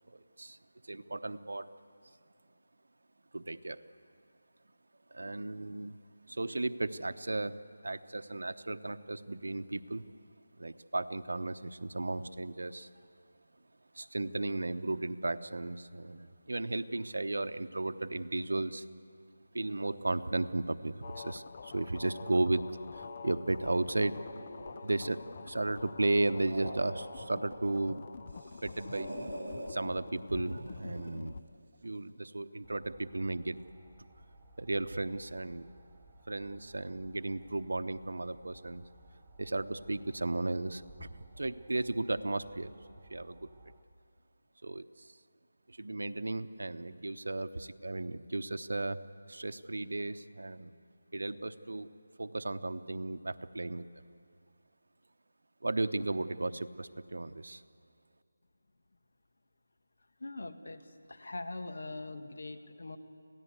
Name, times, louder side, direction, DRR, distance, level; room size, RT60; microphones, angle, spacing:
voice 1, 0.1-0.6 0.8-1.7 3.3-3.8 5.1-6.0 6.3-10.0 10.6-12.9 13.9-18.8 19.5-22.6 22.9-24.2 24.8-28.0 28.6-29.1 29.7-31.3 31.8-33.6 34.6-35.7 36.3-38.8 39.4-42.7 43.1-43.5 44.6-45.1 45.7-49.0 49.3-50.7 51.1-51.9 52.2-54.0 55.6-57.6, right 2 dB, 80° right, 11 dB, 0.9 m, -35 dB
sound 1, 21.0-31.4, left 5 dB, 35° left, 0.5 m, -47 dB
sound 2, 24.1-25.8 26.3-27.9 28.3-29.7 30.5-31.3, right 1 dB, 45° right, 5.5 m, -45 dB
sound 3, 32.6-43.8, right 1 dB, 5° right, 1.1 m, -57 dB
voice 2, 60.2-63.0, left 2 dB, 75° left, 8 dB, 1.8 m, -42 dB
27.0 x 17.0 x 8.2 m, 2.5 s
figure-of-eight pair, 170°, 0 cm